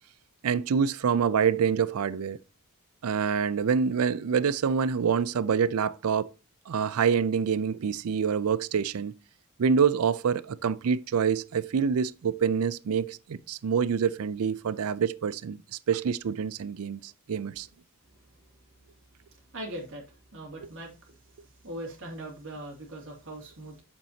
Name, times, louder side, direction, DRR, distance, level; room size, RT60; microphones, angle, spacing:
voice 1, 0.4-2.4 3.0-6.3 6.7-9.1 9.6-15.6 15.9-17.0 17.3-17.7 20.6-20.7, right 6 dB, 80° right, 0.4 m, -26 dB
voice 2, 19.5-20.0 20.3-20.9 21.6-23.8, right 1 dB, 60° right, 2.5 m, -40 dB
8.4 x 7.3 x 2.8 m
head